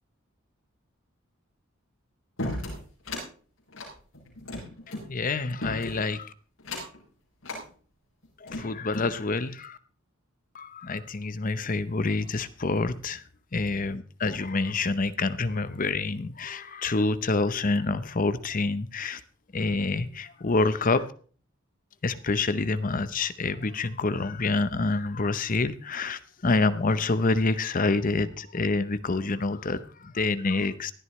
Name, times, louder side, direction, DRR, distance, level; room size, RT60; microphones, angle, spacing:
sound 1, 2.4-3.3 3.7-5.1 5.6-6.1 6.6-7.0 7.4-7.6 8.2-9.1, left 1 dB, 65° left, 7.5 m, -35 dB
voice 1, 4.9-6.3 8.4-9.8 10.5-13.2 13.5-19.2 19.5-21.1 22.0-30.9, left 3 dB, 40° left, 13 dB, 0.8 m, -27 dB
19.0 x 13.0 x 3.2 m, 0.43 s
head